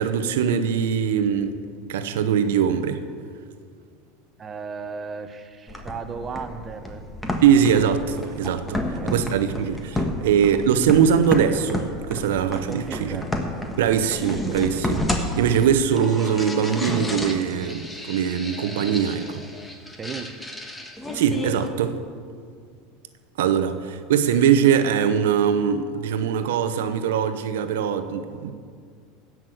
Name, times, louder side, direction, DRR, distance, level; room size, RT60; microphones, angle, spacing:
voice 1, 0.0-1.6 1.9-3.0 7.4-13.2 13.8-19.4 21.1-22.0 23.4-28.5, right 8 dB, 85° right, 10 dB, 0.9 m, -22 dB
voice 2, 4.4-7.0 8.7-9.2 12.7-13.3 20.0-20.5, right 5 dB, 30° right, 9 dB, 1.0 m, -35 dB
sound 1, 5.7-21.7, left 1 dB, 10° left, 1.5 m, -31 dB
16.0 x 6.2 x 7.8 m, 2.1 s
supercardioid pair, 110°, 0 cm